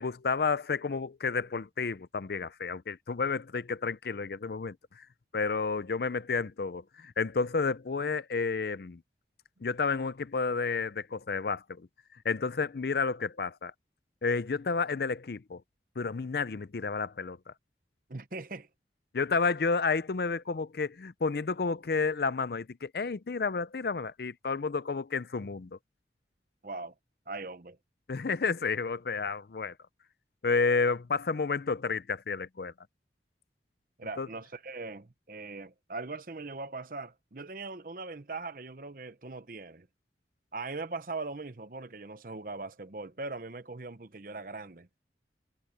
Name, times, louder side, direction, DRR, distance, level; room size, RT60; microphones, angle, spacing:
voice 1, 0.0-5.1 5.3-9.0 9.6-11.6 12.2-13.7 14.2-15.6 16.0-17.4 19.1-25.7 28.1-29.7 30.4-32.7 34.2-34.3, left 4 dB, 60° left, 0.5 m, -31 dB
voice 2, 18.1-18.7 26.6-26.9 27.3-27.8 34.0-39.9 40.5-44.9, right 3 dB, 50° right, 0.9 m, -40 dB
head